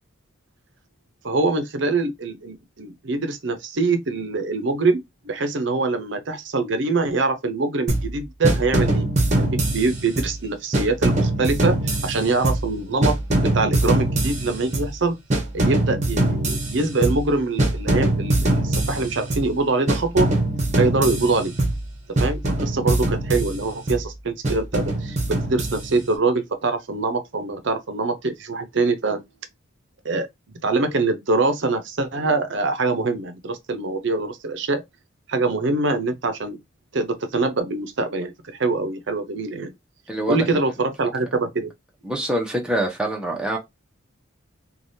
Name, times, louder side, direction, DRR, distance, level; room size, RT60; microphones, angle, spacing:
voice 1, 1.2-9.1 9.4-15.2 15.5-20.3 20.8-21.5 22.2-29.2 30.0-30.3 30.6-34.8 35.3-36.6 36.9-38.3 38.6-39.7 40.3-41.7, right 3 dB, 60° right, 0.6 m, -24 dB
sound 1, 7.9-8.2 8.4-10.4 10.7-12.8 13.0-15.0 15.3-17.3 17.6-19.5 19.9-21.9 22.2-24.1 24.4-26.1, right 1 dB, 35° right, 0.8 m, -23 dB
voice 2, 40.1-40.6 42.0-43.6, right 1 dB, 5° right, 0.7 m, -25 dB
3.3 x 2.3 x 2.7 m
head